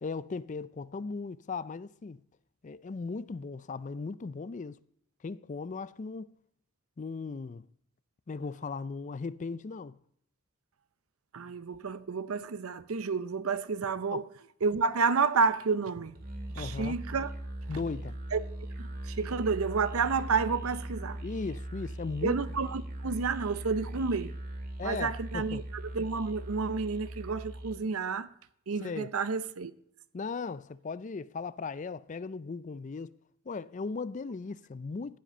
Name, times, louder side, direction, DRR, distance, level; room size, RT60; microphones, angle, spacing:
voice 1, 0.0-2.2 2.6-4.8 5.2-6.4 7.0-7.6 8.3-10.0 14.1-14.2 16.6-17.0 17.7-18.2 21.2-22.4 24.8-25.7 28.8-29.1 30.1-33.1 33.5-35.2, left 4 dB, 35° left, 0.4 m, -37 dB
voice 2, 11.3-14.2 14.6-16.2 16.5-17.3 18.3-18.4 18.8-21.2 22.2-24.3 24.8-28.3 28.7-29.7, right 4 dB, 85° right, 0.6 m, -30 dB
Musical instrument, 16.1-27.9, right 1 dB, 45° right, 1.9 m, -40 dB
15.0 x 7.6 x 5.3 m
head